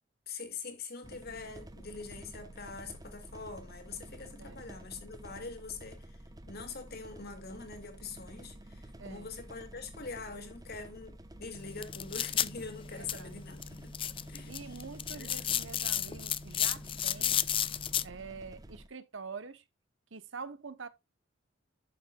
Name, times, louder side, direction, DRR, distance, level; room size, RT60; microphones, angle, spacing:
voice 1, 0.3-13.9 14.3-14.8 15.1-15.6, left 4 dB, 55° left, 2.2 m, -44 dB
sound 1, 1.0-18.9, right 1 dB, 20° right, 0.9 m, -50 dB
voice 2, 9.0-9.3 12.9-13.4 14.5-17.4 18.0-19.6 20.1-20.9, right 5 dB, 70° right, 0.9 m, -45 dB
sound 2, 11.6-18.0, left 10 dB, 25° left, 0.4 m, -34 dB
11.0 x 6.5 x 2.3 m
head